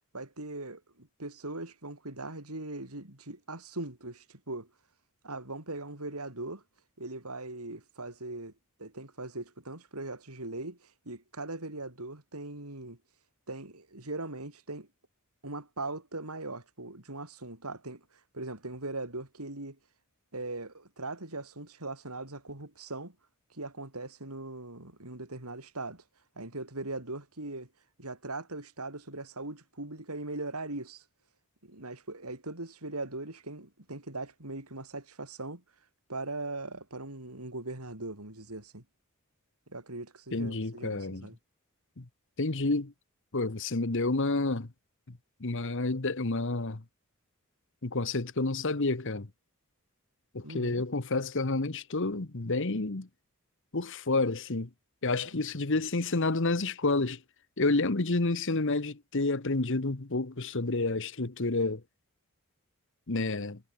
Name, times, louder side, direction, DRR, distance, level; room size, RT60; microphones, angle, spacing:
voice 1, 0.1-4.7 5.2-6.6 7.0-8.5 8.8-13.0 13.5-14.9 15.4-18.0 18.3-19.8 20.3-23.2 23.5-26.0 26.4-27.7 28.0-31.0 31.6-35.6 36.1-38.8 39.7-41.4 50.4-50.8, right 2 dB, 85° right, 5.7 m, -40 dB
voice 2, 40.3-41.3 42.0-42.1 42.4-42.9 43.3-44.7 45.4-46.8 47.8-49.3 50.3-53.1 53.7-54.7 55.0-57.2 57.6-61.8 63.1-63.6, left 3 dB, 60° left, 1.3 m, -29 dB
head